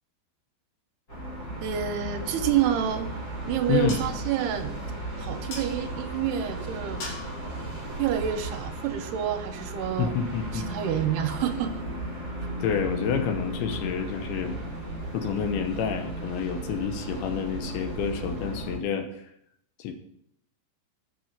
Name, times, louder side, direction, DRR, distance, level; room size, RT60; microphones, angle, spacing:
sound 1, 1.1-18.8, right 1 dB, 30° left, 1.9 m, -35 dB
voice 1, 1.6-3.1 3.5-4.7 5.2-7.0 8.0-10.1 10.5-11.8, right 9 dB, 75° right, 6 dB, 2.6 m, -28 dB
voice 2, 3.7-4.0 10.0-10.7 12.6-14.6 15.1-19.1 19.8-19.9, left 7 dB, 75° left, 7 dB, 2.7 m, -28 dB
sound 2, 3.9-9.1, left 3 dB, 90° left, 5.1 m, -46 dB
8.2 x 6.1 x 7.1 m, 0.72 s
omnidirectional pair, 5.0 m